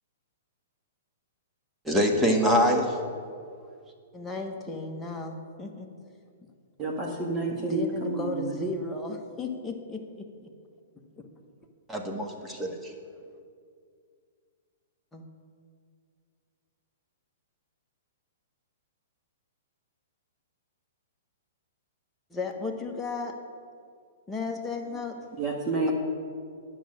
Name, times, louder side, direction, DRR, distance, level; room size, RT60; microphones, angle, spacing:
voice 1, 1.8-3.0 11.9-12.9, equal, 10° right, 1 dB, 1.6 m, -24 dB
voice 2, 4.1-5.9 7.5-10.5 15.1-15.2 22.3-23.4 24.3-25.2, left 3 dB, 10° left, 0 dB, 1.4 m, -34 dB
voice 3, 6.8-8.6 25.4-25.9, right 2 dB, 25° right, -2 dB, 1.7 m, -29 dB
11.0 x 6.2 x 8.8 m, 2.2 s
hypercardioid pair, 120°, 0 cm